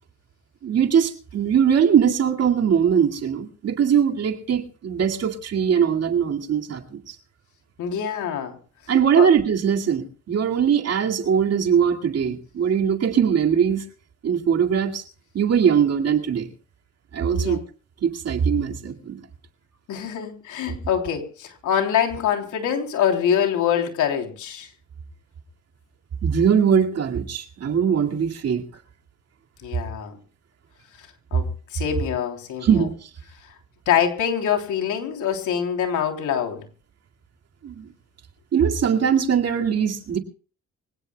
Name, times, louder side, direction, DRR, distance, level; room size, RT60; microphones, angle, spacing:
voice 1, 0.6-7.2 8.9-13.8 14.2-15.0 15.3-16.5 17.1-17.6 18.0-19.2 26.2-28.6 32.6-33.1 37.6-37.9 38.5-40.2, right 7 dB, 55° right, 3 dB, 2.3 m, -21 dB
voice 2, 7.8-8.5 9.1-9.3 17.3-17.6 19.9-24.7 29.6-30.1 31.3-31.5 31.7-32.8 33.8-36.6, left 8 dB, 85° left, 3 dB, 3.4 m, -24 dB
24.5 x 17.0 x 2.3 m, 0.40 s
cardioid pair, 90°, 30 cm